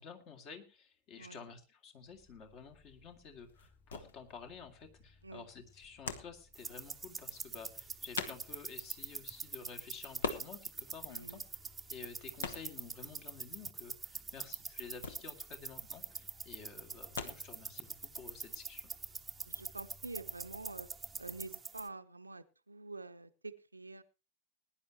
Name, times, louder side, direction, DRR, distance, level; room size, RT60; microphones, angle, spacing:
voice 1, 0.0-11.4 11.9-18.9, left 5 dB, 40° left, 6 dB, 2.3 m, -51 dB
sound 1, 2.0-21.5, left 3 dB, 25° left, 2.3 m, -64 dB
sound 2, 2.1-18.4, left 5 dB, 65° left, 1.3 m, -45 dB
sound 3, 6.5-21.9, right 5 dB, 15° right, 0.8 m, -45 dB
voice 2, 11.1-11.4 19.5-20.9 21.2-24.0, right 3 dB, 80° right, 10 dB, 0.7 m, -47 dB
20.5 x 10.5 x 3.0 m, 0.30 s
figure-of-eight pair, 90°, 0 cm